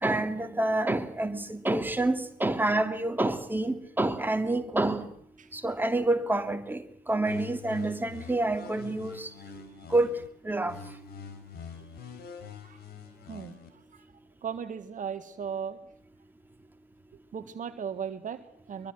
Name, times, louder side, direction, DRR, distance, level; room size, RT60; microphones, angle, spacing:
voice 1, 0.0-5.1 5.5-9.3 9.9-10.2 10.4-10.8, right 2 dB, 10° right, 2.6 m, -28 dB
sound 1, 7.3-10.3 10.7-13.7, left 7 dB, 55° left, 4.1 m, -45 dB
voice 2, 14.4-15.8 17.3-18.9, right 7 dB, 40° right, 1.7 m, -36 dB
24.0 x 22.5 x 6.3 m
figure-of-eight pair, 50°, 19 cm